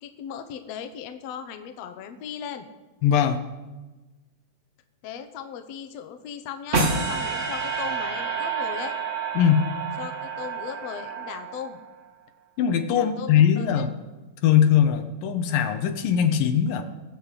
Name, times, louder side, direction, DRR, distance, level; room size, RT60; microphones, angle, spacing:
voice 1, 0.0-2.7 5.0-9.0 10.0-11.8 12.9-13.9, left 8 dB, 70° left, 7 dB, 1.7 m, -37 dB
voice 2, 3.0-3.4 9.4-9.7 12.6-13.9 14.4-16.8, left 9 dB, 85° left, 7 dB, 2.7 m, -20 dB
sound 1, 6.7-11.9, right 4 dB, 70° right, 0.7 m, -29 dB
20.0 x 7.8 x 5.0 m, 1.2 s
omnidirectional pair, 3.9 m